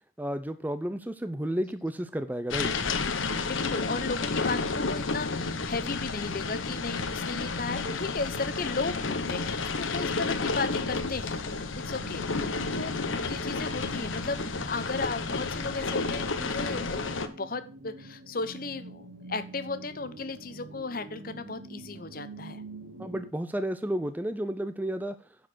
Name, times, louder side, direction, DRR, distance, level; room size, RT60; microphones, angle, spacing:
voice 1, 0.2-2.7 23.0-25.2, right 1 dB, 10° right, 10 dB, 0.5 m, -32 dB
sound 1, 2.5-17.3, left 4 dB, 85° left, 1.0 m, -31 dB
voice 2, 3.0-14.4 14.7-22.6, left 3 dB, 45° left, 12 dB, 0.9 m, -35 dB
sound 2, 8.4-23.3, right 3 dB, 75° right, 1.5 m, -47 dB
10.0 x 4.9 x 6.2 m, 0.35 s
head